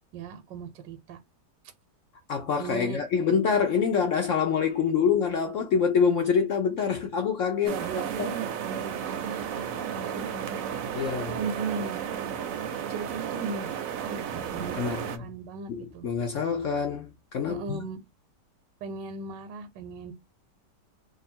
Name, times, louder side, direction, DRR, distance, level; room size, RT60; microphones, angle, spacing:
voice 1, 0.1-1.2 2.6-3.0 7.6-9.7 9.9-10.7 11.3-12.0 12.9-16.1 17.5-18.0 18.8-20.1, right 5 dB, 90° right, 1.3 m, -37 dB
voice 2, 2.3-7.8 8.2-8.3 10.9-11.4 14.8-15.2 15.7-17.8, left 6 dB, 70° left, 0.7 m, -26 dB
sound 1, 7.7-15.2, right 8 dB, 65° right, 0.9 m, -33 dB
2.8 x 2.6 x 4.2 m
omnidirectional pair, 1.9 m